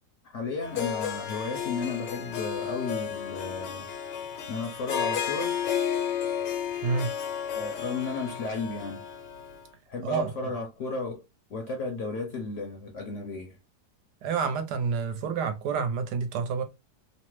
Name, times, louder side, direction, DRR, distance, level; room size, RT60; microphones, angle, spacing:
voice 1, 0.2-3.9 4.5-5.6 7.5-9.0 9.9-11.2 11.5-13.6, left 4 dB, 65° left, 0.8 m, -34 dB
Harp, 0.6-9.6, left 8 dB, 85° left, 1.3 m, -32 dB
voice 2, 14.2-16.6, right 5 dB, 80° right, 1.2 m, -28 dB
3.1 x 2.0 x 3.0 m
omnidirectional pair, 1.9 m